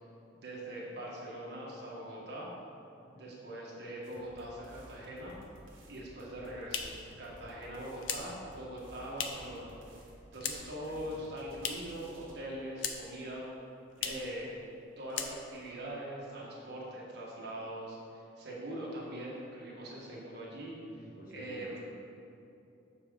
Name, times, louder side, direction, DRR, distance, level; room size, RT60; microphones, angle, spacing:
voice 1, 0.3-2.5 3.1-5.4 5.8-9.7 10.3-13.4 14.0-14.5 15.0-20.8 21.3-21.8, right 1 dB, 55° right, -5 dB, 1.5 m, -42 dB
voice 2, 3.0-3.4 10.9-11.2 13.9-14.2 20.9-21.8, right 1 dB, 45° left, -2 dB, 1.1 m, -52 dB
sound 1, 4.0-12.3, right 1 dB, 80° right, 1.4 m, -55 dB
sound 2, 6.1-9.6 9.9-10.8 11.1-12.0 12.3-13.2 13.5-13.6 13.9-14.3 14.7-14.8 15.1-15.7, left 7 dB, 70° left, 0.6 m, -39 dB
7.1 x 4.8 x 5.2 m, 2.8 s
head